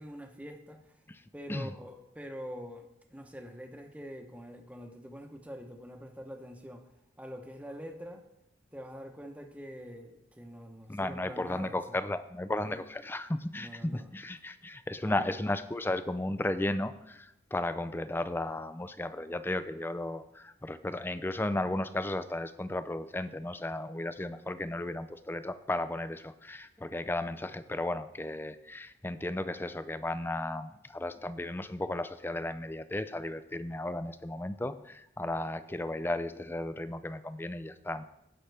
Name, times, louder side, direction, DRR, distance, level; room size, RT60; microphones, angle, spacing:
voice 1, 0.0-1.0 1.3-6.8 7.2-8.2 8.7-12.0 12.6-12.8 13.6-14.1 15.0-15.2, equal, 10° right, 4 dB, 0.9 m, -45 dB
voice 2, 10.9-38.0, left 1 dB, 10° left, 12 dB, 0.4 m, -34 dB
17.0 x 5.7 x 3.4 m, 0.83 s
head